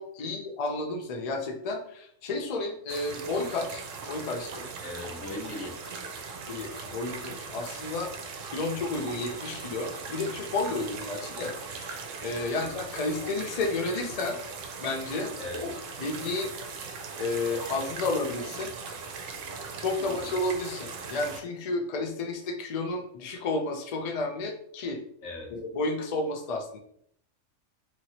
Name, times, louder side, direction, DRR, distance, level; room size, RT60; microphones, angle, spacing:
voice 1, 0.0-4.7 6.5-8.1 8.4-14.4 14.8-15.7 16.0-16.5 17.2-18.7 19.8-25.0 25.5-26.8, left 2 dB, 65° left, 3 dB, 0.3 m, -32 dB
sound 1, 2.9-21.4, right 5 dB, 75° right, 0.9 m, -39 dB
voice 2, 4.8-6.3 12.6-12.7 15.4-15.7 20.0-20.3 25.2-25.5, left 2 dB, 90° left, -1 dB, 1.3 m, -40 dB
3.0 x 2.9 x 2.7 m, 0.67 s
omnidirectional pair, 1.4 m